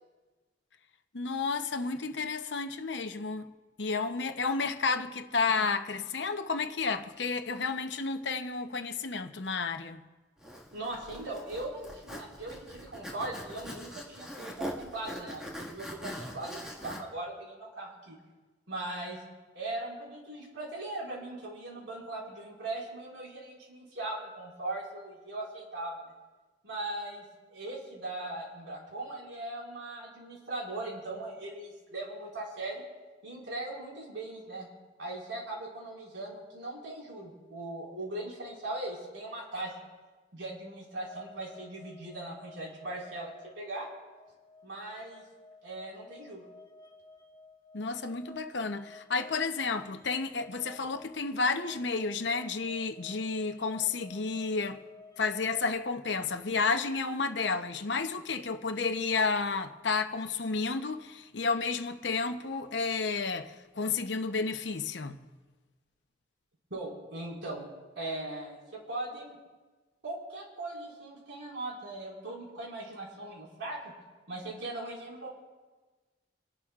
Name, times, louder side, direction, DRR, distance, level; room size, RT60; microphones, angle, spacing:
voice 1, 1.1-3.5 3.8-10.0 47.7-54.8 55.2-65.2, left 4 dB, 70° left, 0.8 m, -31 dB
Zipper (clothing), 10.4-17.0, equal, 5° right, 1.8 m, -42 dB
voice 2, 10.7-18.2 18.7-19.2 19.5-26.1 26.6-32.8 33.2-34.7 35.0-39.8 40.3-43.3 43.6-43.9 44.6-45.2 45.6-46.4 66.7-67.6 67.9-69.4 70.0-73.9 74.3-75.3, right 2 dB, 85° right, 5.0 m, -39 dB
sound 1, 41.0-55.7, left 3 dB, 20° left, 0.9 m, -54 dB
27.5 x 11.5 x 2.5 m
head